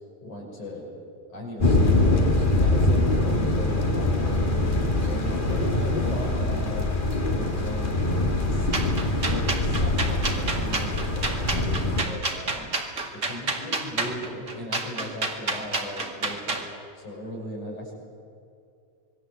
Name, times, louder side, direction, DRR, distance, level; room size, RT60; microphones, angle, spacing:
voice 1, 0.2-0.9 1.3-6.9 7.3-8.0 8.4-12.7 13.1-16.6 17.0-17.9, left 1 dB, 85° left, -3 dB, 7.9 m, -38 dB
sound 1, 1.6-12.0, left 2 dB, 20° left, 1.7 m, -23 dB
sound 2, 8.7-16.7, right 3 dB, 25° right, 2.3 m, -29 dB
26.5 x 21.5 x 8.1 m, 2.4 s
omnidirectional pair, 3.4 m